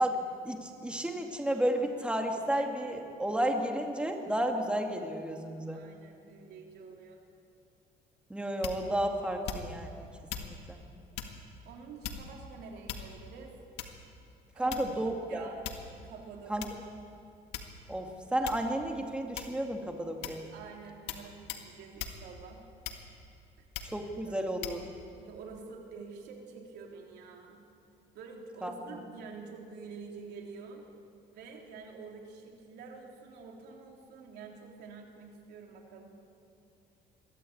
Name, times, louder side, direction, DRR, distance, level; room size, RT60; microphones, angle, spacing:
voice 1, 0.0-5.8 8.3-10.1 10.4-10.8 14.6-15.5 16.5-16.7 17.9-20.5 23.8-24.9 28.6-29.0, right 1 dB, 5° right, 3 dB, 2.2 m, -32 dB
voice 2, 5.7-7.2 11.7-13.6 14.6-14.8 15.0-16.6 20.5-22.6 24.3-24.5 25.2-27.6 28.1-30.8 31.3-36.2, right 5 dB, 80° right, 1 dB, 3.5 m, -48 dB
sound 1, 8.6-9.0 9.4-9.9 10.3-10.5 11.1-11.4 12.0-12.4 12.9-13.3 13.8-14.1 14.7-15.1 15.6-16.0 16.6-16.8 17.5-18.0 18.4-18.7 19.3-19.7 20.2-20.5 21.1-21.2 21.5-21.7 22.0-22.2 22.8-23.2 23.7-24.0 24.6-24.8, left 9 dB, 90° left, 1.9 m, -39 dB
22.5 x 14.5 x 8.7 m, 2.6 s
cardioid pair, 110°, 17 cm